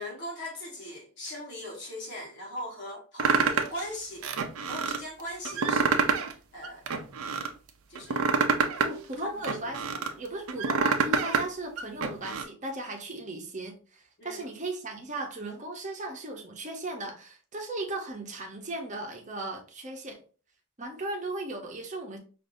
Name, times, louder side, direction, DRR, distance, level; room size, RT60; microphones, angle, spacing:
voice 1, 0.0-4.2 4.7-6.1 6.5-6.8 7.9-8.3 8.8-9.0 9.3-9.5 9.9-10.1 14.2-14.4, left 1 dB, 50° left, 1.4 m, -39 dB
sound 1, 3.2-3.8 4.2-5.0 5.5-6.3 6.6-7.5 8.0-10.1 10.5-11.4 11.8-12.4, right 5 dB, 75° right, 0.5 m, -26 dB
voice 2, 8.8-9.8 10.2-20.2 20.8-22.2, right 2 dB, 35° right, 0.8 m, -36 dB
4.9 x 2.5 x 2.6 m
head